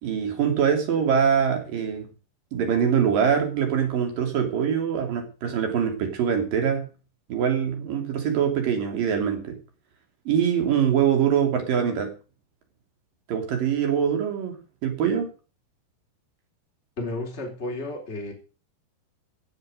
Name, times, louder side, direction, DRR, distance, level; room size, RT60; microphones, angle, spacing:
voice 1, 0.0-2.1 2.5-6.9 7.3-9.6 10.3-12.1 13.3-14.6 14.8-15.3, right 8 dB, 55° right, 4 dB, 4.3 m, -23 dB
voice 2, 17.0-18.3, left 2 dB, 15° left, 1 dB, 3.6 m, -32 dB
16.0 x 7.9 x 6.6 m, 0.36 s
omnidirectional pair, 4.9 m